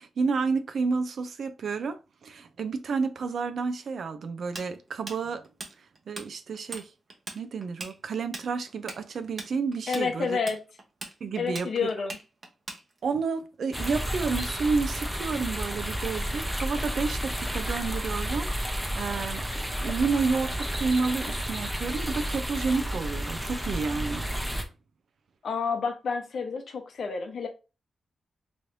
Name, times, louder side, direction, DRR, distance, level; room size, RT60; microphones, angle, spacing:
voice 1, 0.0-5.5 6.1-6.9 7.3-10.4 11.2-11.9 13.0-19.4 19.8-24.2, right 4 dB, 70° right, 0.5 m, -30 dB
Tools, 4.6-6.3 6.5-6.9 7.1-13.2, right 2 dB, 40° right, 0.8 m, -39 dB
voice 2, 9.9-10.6 11.4-12.2 25.4-27.5, left 5 dB, 65° left, 0.7 m, -29 dB
sound 1, 13.7-24.6, equal, ahead, 0.6 m, -31 dB
3.1 x 3.0 x 2.6 m
cardioid pair, 95°, 0 cm